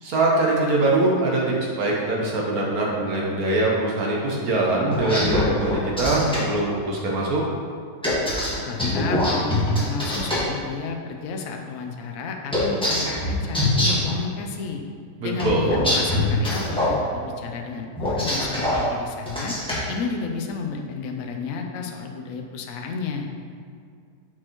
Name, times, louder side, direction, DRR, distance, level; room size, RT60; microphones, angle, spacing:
voice 1, 0.0-1.4 1.8-7.4 15.2-15.6, right 2 dB, 65° right, -2 dB, 1.3 m, -22 dB
sound 1, 4.9-6.4 8.0-10.4 12.5-14.1 15.4-16.9 18.0-18.8 19.3-19.8, left 1 dB, 5° left, 1.3 m, -23 dB
voice 2, 8.6-14.8 15.2-19.5 19.9-23.3, left 5 dB, 65° left, 2 dB, 0.9 m, -32 dB
6.4 x 6.1 x 3.0 m, 2.2 s
omnidirectional pair, 1.8 m